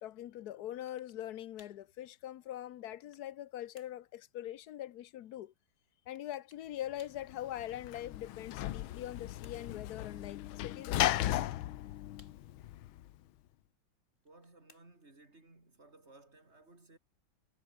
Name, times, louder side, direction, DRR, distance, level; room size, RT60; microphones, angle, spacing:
voice 1, 0.0-5.5 6.1-11.4, left 12 dB, 65° left, 1.1 m, -43 dB
sound 1, 0.9-1.3 1.6-1.9 2.5-3.3 3.8-4.1 6.2-6.7 7.0-7.3 8.7-9.8 11.2-11.7 12.2-12.7 14.2-15.1, left 3 dB, 35° left, 3.5 m, -65 dB
Sliding door / Slam, 7.2-13.1, left 14 dB, 85° left, 1.6 m, -36 dB
voice 2, 14.2-17.0, right 2 dB, 30° right, 4.8 m, -60 dB
omnidirectional pair, 2.2 m